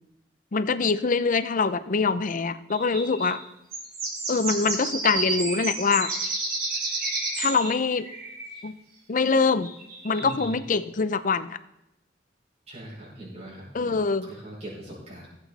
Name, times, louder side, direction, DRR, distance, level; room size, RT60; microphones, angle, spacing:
voice 1, 0.5-3.4 4.3-6.1 7.4-8.1 8.6-8.7 9.1-9.7 10.0-11.6 13.7-14.3, left 4 dB, 45° left, 13 dB, 0.6 m, -24 dB
sound 1, 2.7-3.4 3.7-8.6 9.6-10.5, right 3 dB, 55° right, 3.2 m, -31 dB
voice 2, 10.2-10.6 12.7-14.0 14.3-15.3, right 1 dB, 35° right, -6 dB, 5.3 m, -40 dB
16.5 x 8.1 x 4.1 m, 0.88 s
head